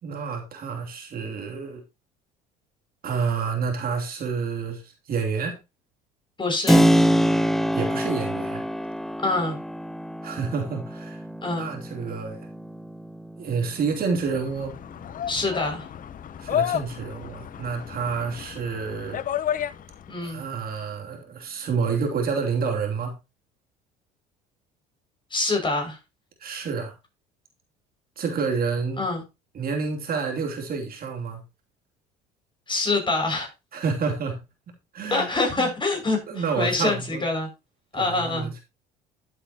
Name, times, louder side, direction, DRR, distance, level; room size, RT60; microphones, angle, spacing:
voice 1, 0.0-1.8 3.0-5.6 7.7-8.6 10.2-11.2 11.6-12.5 13.4-14.8 16.4-19.2 20.2-23.1 26.4-26.9 28.2-29.0 29.5-31.4 33.7-34.4 34.9-35.3 35.6-35.7 36.3-37.2 37.9-38.6, right 5 dB, 45° right, 2.8 m, -29 dB
voice 2, 6.4-6.9 9.2-9.6 11.4-11.7 15.3-15.9 20.1-20.4 25.3-26.0 29.0-29.2 32.7-33.5 35.1-37.5 37.9-38.5, left 3 dB, 25° left, 6.1 m, -25 dB
Keyboard (musical), 6.7-15.2, equal, ahead, 0.6 m, -25 dB
sound 1, 13.9-20.2, left 10 dB, 40° left, 0.7 m, -32 dB
12.5 x 8.2 x 2.9 m
hypercardioid pair, 70°, 20 cm